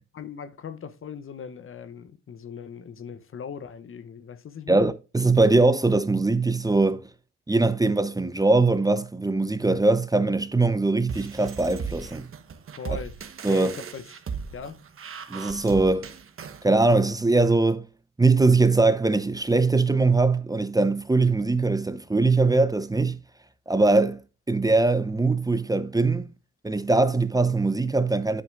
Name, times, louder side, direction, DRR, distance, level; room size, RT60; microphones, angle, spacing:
voice 1, 0.2-4.9 12.8-13.2 13.5-14.1 14.5-14.8, left 7 dB, 45° left, 0.8 m, -39 dB
voice 2, 4.7-7.1 7.5-12.3 13.4-13.7 15.3-16.1 16.6-17.8 18.2-23.2 23.7-24.2 24.5-26.3 26.6-28.4, right 3 dB, 10° right, 0.8 m, -21 dB
sound 1, 11.1-16.7, right 6 dB, 45° right, 1.3 m, -37 dB
9.1 x 8.0 x 2.5 m
cardioid pair, 90°, 30 cm